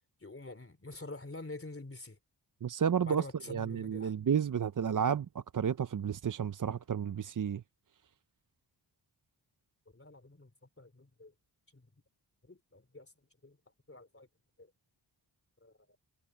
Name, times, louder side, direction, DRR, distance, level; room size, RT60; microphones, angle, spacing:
voice 1, 0.2-2.2 3.0-4.1 9.9-10.5 10.8-11.3 11.7-11.9 12.4-13.1 13.4-13.6 13.9-14.3 14.6-14.7 15.6-16.0, left 2 dB, 30° left, 3.4 m, -47 dB
voice 2, 2.6-7.6, right 7 dB, 45° right, 0.6 m, -32 dB
cardioid pair, 50°, 44 cm